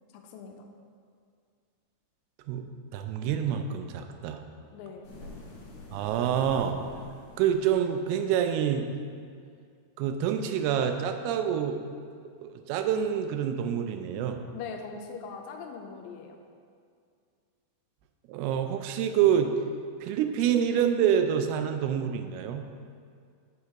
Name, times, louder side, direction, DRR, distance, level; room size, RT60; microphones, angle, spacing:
voice 1, 0.1-0.6 4.7-5.1 14.5-16.4, left 5 dB, 85° left, 3 dB, 2.1 m, -41 dB
voice 2, 2.9-4.4 5.9-6.8 7.4-8.9 10.0-11.8 12.4-14.4 18.3-19.5 20.0-22.6, right 9 dB, 85° right, 6 dB, 2.5 m, -27 dB
sound 1, 5.0-8.1, left 2 dB, 60° left, 1.8 m, -47 dB
8.4 x 7.8 x 2.9 m, 2.2 s
omnidirectional pair, 4.6 m